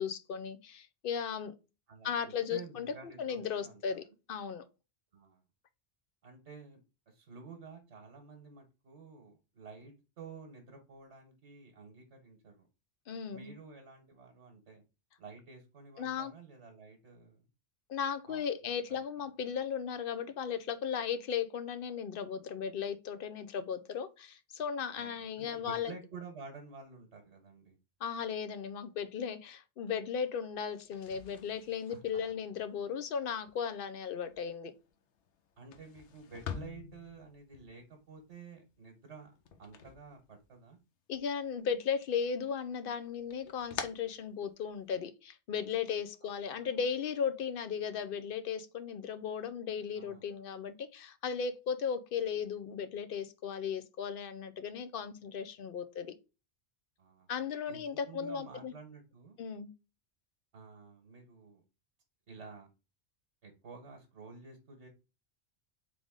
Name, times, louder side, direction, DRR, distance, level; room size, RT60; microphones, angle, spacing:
voice 1, 0.0-1.5 2.0-2.9 3.2-4.6 13.1-13.5 16.0-16.3 17.9-25.9 28.0-34.7 41.1-56.1 57.3-58.7 59.4-59.7, left 7 dB, 60° left, 0.7 m, -36 dB
voice 2, 1.9-4.0 5.1-5.4 6.2-6.8 7.1-12.7 13.3-14.8 15.2-17.5 18.3-18.4 18.9-19.0 25.0-27.8 31.9-32.2 35.6-39.3 39.6-40.8 46.2-46.7 50.0-50.4 57.0-59.4 60.5-61.6 62.3-62.7 63.4-64.9, right 4 dB, 90° right, 1.4 m, -51 dB
sound 1, 30.8-40.8 41.1-42.0 42.3-45.0, left 7 dB, 85° left, 1.0 m, -48 dB
3.8 x 3.5 x 3.6 m
omnidirectional pair, 1.1 m